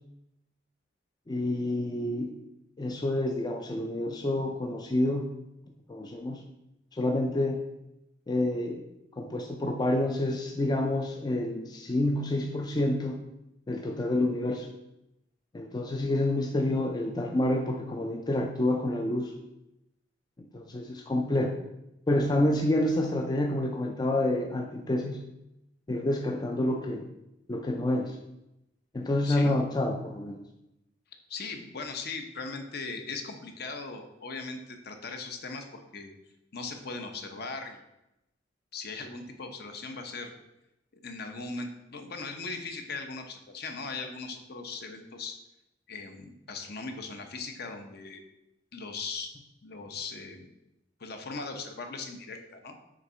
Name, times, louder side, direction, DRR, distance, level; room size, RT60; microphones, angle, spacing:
voice 1, 1.3-2.3 2.8-5.3 5.9-6.4 6.9-7.6 8.3-8.8 9.1-13.2 13.7-14.7 15.5-19.3 20.4-21.6 22.1-25.2 25.9-27.1 27.5-28.2 28.9-30.4, left 1 dB, 20° left, 3 dB, 0.4 m, -28 dB
voice 2, 29.2-29.6 31.3-36.1 36.5-37.8 38.7-40.3 41.0-45.4 45.9-48.2 48.7-49.3 49.6-50.5 51.0-52.8, left 4 dB, 55° left, 5 dB, 0.8 m, -39 dB
6.5 x 3.6 x 4.3 m, 0.89 s
head